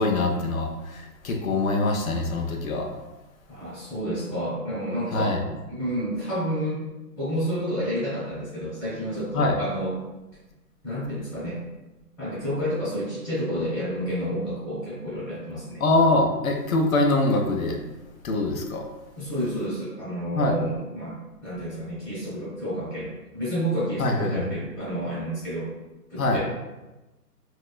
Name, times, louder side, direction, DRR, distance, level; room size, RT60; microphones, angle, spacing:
voice 1, 0.0-2.9 5.1-5.4 9.3-9.5 15.8-17.8 18.2-18.9 20.4-20.6 24.0-24.4 26.2-26.4, left 2 dB, 60° left, 3 dB, 0.5 m, -23 dB
voice 2, 3.5-5.4 5.7-6.8 7.1-10.0 10.8-11.6 12.2-15.8 19.1-25.7 26.1-26.4, equal, 20° left, -19 dB, 0.7 m, -30 dB
3.0 x 2.3 x 2.3 m, 1.1 s
hypercardioid pair, 175°, 48 cm